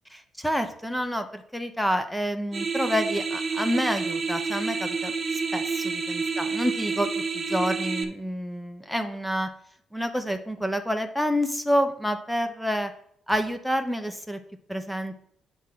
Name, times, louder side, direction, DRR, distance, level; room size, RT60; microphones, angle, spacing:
voice 1, 0.1-5.1 5.5-7.1 7.3-9.5 9.9-12.9 13.3-14.4 14.7-15.2, equal, 5° left, 8 dB, 0.9 m, -28 dB
sound 1, 2.5-8.0, right 4 dB, 40° right, 0.9 m, -29 dB
8.0 x 3.8 x 5.8 m, 0.67 s
cardioid pair, 90°, 0 cm